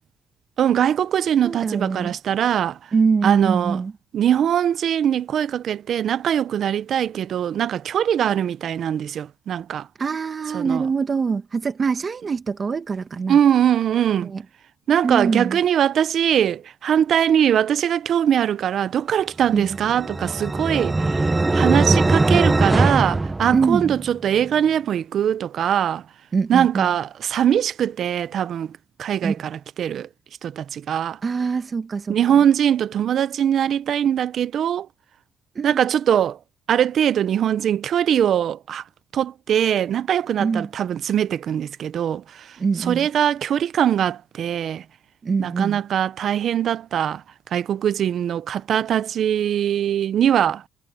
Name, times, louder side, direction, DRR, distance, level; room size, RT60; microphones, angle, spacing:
voice 1, 0.6-2.8 3.2-3.8 4.1-9.9 10.5-10.9 13.3-14.3 14.9-21.2 21.5-26.0 26.5-28.7 29.0-30.1 30.4-31.2 32.1-34.9 35.6-36.4 36.7-38.8 39.1-44.8 45.4-47.2 47.5-50.6, right 9 dB, 65° right, 0.7 m, -21 dB
voice 2, 1.4-2.1 2.9-3.9 10.0-13.4 14.2-14.4 15.0-15.6 19.5-19.8 23.5-23.9 26.3-26.9 29.2-29.3 31.2-32.2 35.6-35.8 40.4-40.7 42.6-43.1 45.2-45.8, right 5 dB, 40° right, 2.0 m, -24 dB
sound 1, 19.6-24.1, right 2 dB, 20° right, 1.1 m, -21 dB
cardioid pair, 90°, 0 cm